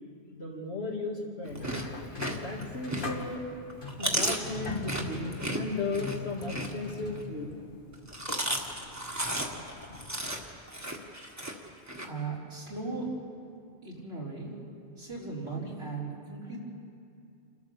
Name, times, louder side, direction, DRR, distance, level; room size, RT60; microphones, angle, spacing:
voice 1, 0.3-1.7 2.4-3.4 4.0-7.5, left 3 dB, 85° left, -1 dB, 3.0 m, -35 dB
Chewing mastication, 1.4-3.3 3.7-7.2 7.9-12.1, right 1 dB, 15° right, 1.7 m, -34 dB
sound 1, 1.6-10.5, left 2 dB, 55° left, 1.7 m, -42 dB
voice 2, 12.0-13.1 13.8-14.5 15.0-16.6, right 4 dB, 85° right, -5 dB, 4.2 m, -37 dB
29.0 x 12.5 x 7.1 m, 2.5 s
omnidirectional pair, 1.1 m